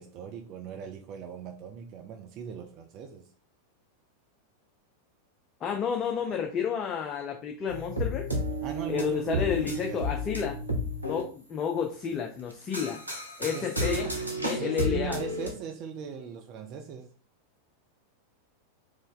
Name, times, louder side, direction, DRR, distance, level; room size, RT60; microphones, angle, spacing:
voice 1, 0.0-3.3 8.6-10.0 13.4-14.1 14.5-17.1, right 7 dB, 40° right, 0.4 m, -39 dB
voice 2, 5.6-8.3 8.9-10.6 11.0-13.0 13.4-14.0 14.4-15.2, left 7 dB, 30° left, 0.5 m, -31 dB
sound 1, 7.7-11.2 12.5-15.5, equal, 85° right, 0.8 m, -32 dB
3.1 x 2.6 x 3.7 m
figure-of-eight pair, 90°, 0 cm